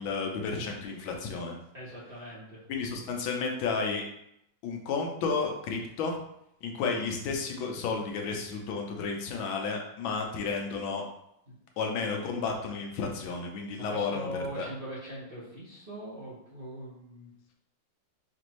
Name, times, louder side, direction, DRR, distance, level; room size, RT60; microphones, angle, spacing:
voice 1, 0.0-1.5 2.7-4.0 4.6-6.2 6.6-11.0 11.8-14.3 14.6-14.7, left 4 dB, 85° left, 2 dB, 1.5 m, -32 dB
voice 2, 1.7-2.6 13.7-17.3, equal, 35° right, -8 dB, 1.0 m, -40 dB
5.0 x 2.6 x 3.0 m, 0.77 s
omnidirectional pair, 2.1 m